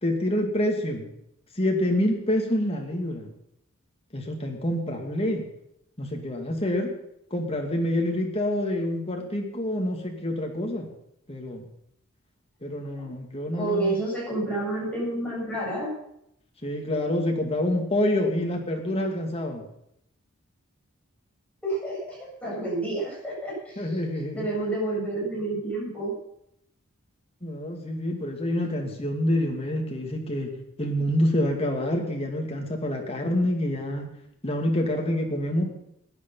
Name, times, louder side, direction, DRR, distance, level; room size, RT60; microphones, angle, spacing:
voice 1, 0.0-1.1 1.5-3.3 4.1-5.4 6.0-6.9 7.3-10.9 11.3-11.7 12.6-14.0 16.6-19.6 23.8-24.5 27.4-30.5 30.8-34.1 34.4-35.6, left 1 dB, 30° left, 1 dB, 2.6 m, -27 dB
voice 2, 13.6-15.9 21.6-23.8 24.3-26.1 28.8-28.9, right 2 dB, 5° left, -6 dB, 8.0 m, -29 dB
16.5 x 10.0 x 5.7 m, 0.75 s
head